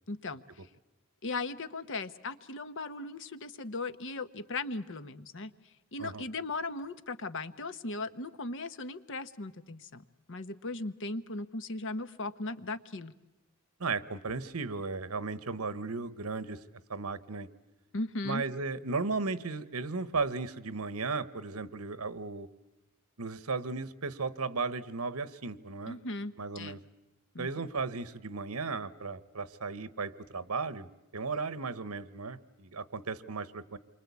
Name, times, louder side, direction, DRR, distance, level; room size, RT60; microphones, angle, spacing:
voice 1, 0.1-0.4 1.2-5.5 5.9-13.1 17.9-18.4 25.9-26.8 27.3-27.7, left 2 dB, 60° left, 11 dB, 1.1 m, -38 dB
voice 2, 13.8-16.6 16.9-17.5 18.2-22.5 23.2-26.0 26.4-26.8 27.4-30.9 31.1-33.8, right 4 dB, 85° right, 15 dB, 1.2 m, -35 dB
28.0 x 24.0 x 8.4 m, 0.99 s
head